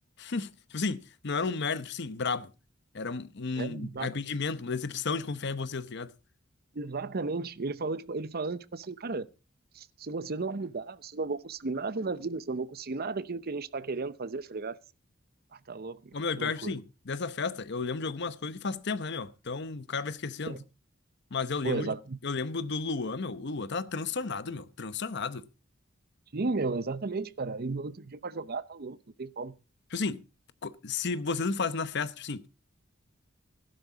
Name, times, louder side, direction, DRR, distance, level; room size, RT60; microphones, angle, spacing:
voice 1, 0.2-2.5 2.9-6.1 16.1-20.6 21.3-22.0 22.2-25.5 29.9-30.2 30.6-32.5, left 4 dB, 60° left, 0.9 m, -33 dB
voice 2, 3.6-4.2 6.7-9.3 9.7-14.8 15.5-16.8 20.5-20.6 21.6-22.2 26.3-29.6, right 3 dB, 50° right, 0.7 m, -34 dB
14.5 x 12.0 x 4.0 m
head